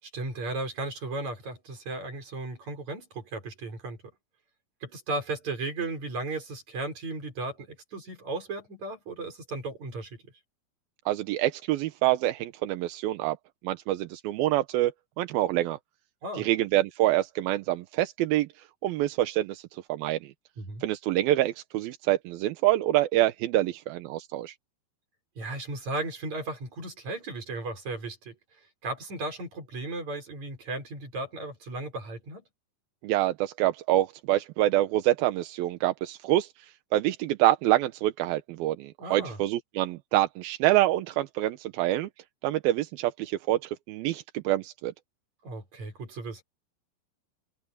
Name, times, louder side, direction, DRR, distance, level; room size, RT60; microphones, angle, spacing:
voice 1, 0.0-4.0 4.8-10.2 16.2-16.5 20.6-20.8 25.4-28.3 28.8-32.4 39.0-39.4 45.4-46.4, right 2 dB, 40° right, 6.9 m, -35 dB
voice 2, 11.1-13.4 13.6-14.9 15.2-15.8 16.4-18.5 18.8-20.3 20.8-24.5 33.0-36.5 36.9-42.1 42.4-44.9, right 15 dB, 75° right, 2.5 m, -26 dB
omnidirectional pair, 4.8 m